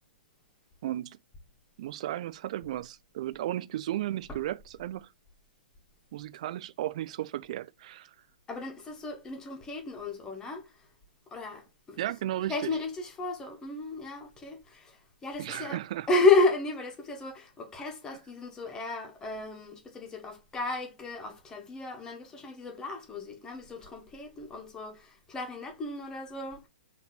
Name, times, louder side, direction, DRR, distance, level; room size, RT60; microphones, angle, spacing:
voice 1, 0.8-1.2 1.8-5.1 6.1-8.1 12.0-12.7 15.4-16.1, right 13 dB, 45° right, 0.4 m, -34 dB
voice 2, 8.5-10.7 11.3-12.0 12.5-15.8 16.1-26.6, left 3 dB, 15° left, 1.2 m, -32 dB
4.1 x 2.8 x 4.0 m
figure-of-eight pair, 115°, 5 cm